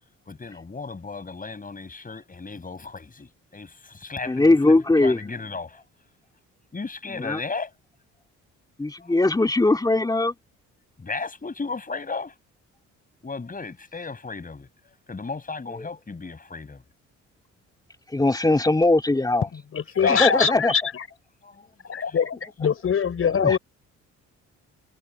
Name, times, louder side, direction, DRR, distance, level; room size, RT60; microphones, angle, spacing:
voice 1, 0.3-5.8 6.7-7.7 9.0-9.2 11.0-12.3 13.2-14.7 15.1-16.8 20.0-20.2 21.4-22.2, left 4 dB, 30° left, 7.5 m, -35 dB
voice 2, 4.3-5.2 7.2-7.4 8.8-10.3 18.1-19.5 20.1-20.7 23.3-23.6, left 2 dB, 15° left, 2.6 m, -20 dB
voice 3, 19.5-21.1 21.8-23.6, left 7 dB, 45° left, 4.5 m, -23 dB
cardioid pair, 90°, 30 cm